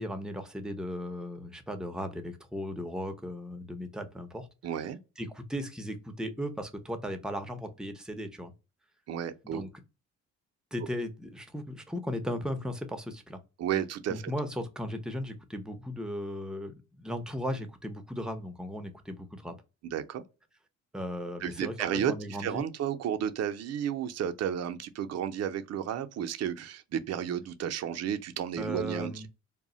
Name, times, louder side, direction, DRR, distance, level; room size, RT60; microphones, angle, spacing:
voice 1, 0.0-4.5 5.2-8.5 9.4-9.7 10.7-13.4 14.1-19.5 20.9-22.7 28.6-29.3, equal, ahead, 0.5 m, -36 dB
voice 2, 4.6-5.0 9.1-9.6 13.6-14.2 19.8-20.2 21.4-29.3, right 9 dB, 55° right, 0.5 m, -32 dB
2.2 x 2.0 x 3.7 m
cardioid pair, 90°, 30 cm